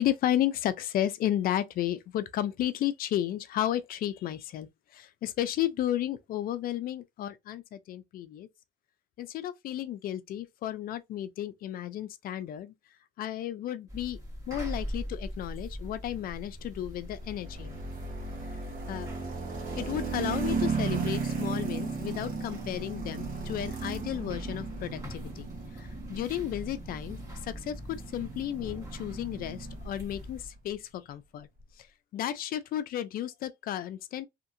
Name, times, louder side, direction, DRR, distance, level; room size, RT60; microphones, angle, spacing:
voice 1, 0.0-8.5 9.2-12.7 13.2-14.2 14.5-17.8 18.9-19.1 19.8-25.5 25.8-31.5 31.8-31.9 32.1-34.3, left 12 dB, 60° left, 0.5 m, -33 dB
sound 1, 13.9-30.5, equal, 20° right, 1.4 m, -42 dB
sound 2, 17.2-30.4, right 4 dB, 55° right, 1.2 m, -36 dB
2.8 x 2.6 x 2.6 m
cardioid pair, 110°, 17 cm